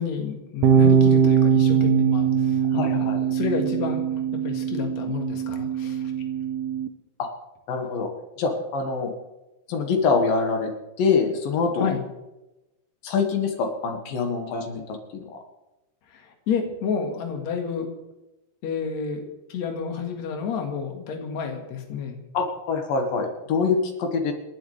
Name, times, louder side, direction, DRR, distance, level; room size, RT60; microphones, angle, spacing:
voice 1, 0.0-4.0 4.4-6.1 11.8-12.0 16.1-17.9 18.6-22.2, left 6 dB, 55° left, 3 dB, 2.9 m, -30 dB
sound 1, 0.6-6.9, right 7 dB, 85° right, 1.4 m, -21 dB
voice 2, 2.7-3.2 7.2-7.3 7.7-8.1 8.4-9.1 9.7-10.7 11.0-11.9 13.0-15.4 22.3-24.3, left 4 dB, 85° left, 3 dB, 3.3 m, -25 dB
29.0 x 11.5 x 3.3 m, 1.0 s
omnidirectional pair, 3.9 m